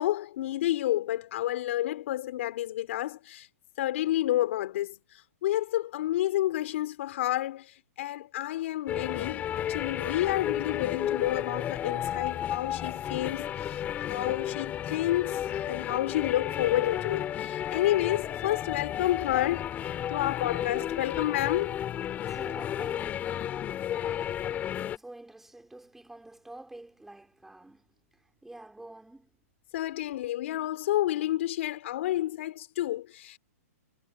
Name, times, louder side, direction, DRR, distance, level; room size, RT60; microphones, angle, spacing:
voice 1, 0.0-3.5 3.8-4.9 5.4-7.6 8.0-9.4 9.7-13.8 14.1-19.7 20.1-21.8 29.7-33.4, left 14 dB, 55° left, 3.9 m, -29 dB
sound 1, 8.9-25.0, left 10 dB, 20° left, 2.6 m, -33 dB
voice 2, 22.3-27.9 28.4-29.3, right 2 dB, 5° right, 3.4 m, -48 dB
hypercardioid pair, 150°, 8 cm